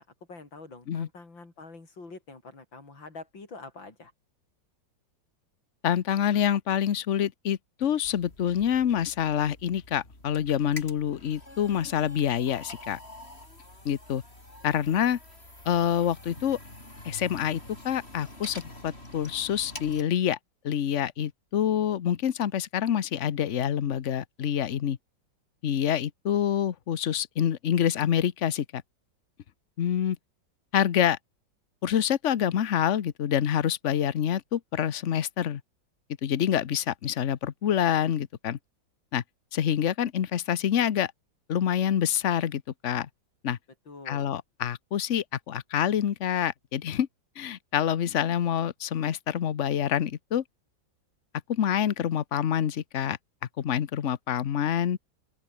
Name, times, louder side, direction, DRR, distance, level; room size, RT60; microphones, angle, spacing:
voice 1, 0.0-4.1 43.9-44.4, left 3 dB, 80° left, 5.7 m, -46 dB
voice 2, 5.8-13.0 13.8-14.2 14.6-15.2 15.6-16.6 17.0-20.4 20.6-25.0 25.6-28.8 29.8-30.2 30.7-31.2 31.8-35.6 36.2-38.6 39.1-39.2 39.5-41.1 41.5-43.1 43.4-43.6 44.1-47.1 47.4-50.4 51.5-53.2 53.6-55.0, left 9 dB, 50° left, 1.1 m, -27 dB
sound 1, 8.0-20.0, left 1 dB, 30° left, 7.4 m, -46 dB
open air
omnidirectional pair, 2.1 m